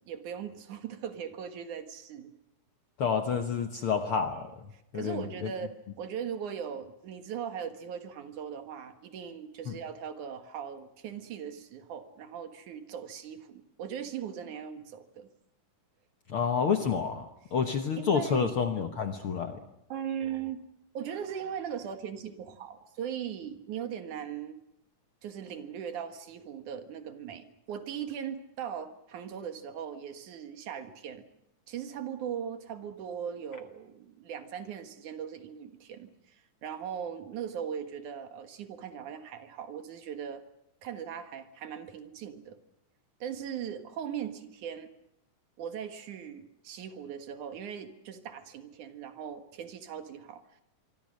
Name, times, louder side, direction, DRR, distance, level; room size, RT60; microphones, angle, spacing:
voice 1, 0.1-2.3 4.9-15.3 18.0-18.5 19.9-20.6 20.9-24.6 25.2-31.3 31.7-36.4 36.6-40.4 40.8-42.6 43.2-44.9 45.6-50.4, right 8 dB, 70° right, 8 dB, 3.0 m, -39 dB
voice 2, 3.0-4.5 4.9-5.5 9.7-9.8 16.3-19.6, left 6 dB, 55° left, 7 dB, 1.6 m, -29 dB
25.0 x 24.5 x 6.5 m, 0.83 s
omnidirectional pair, 3.7 m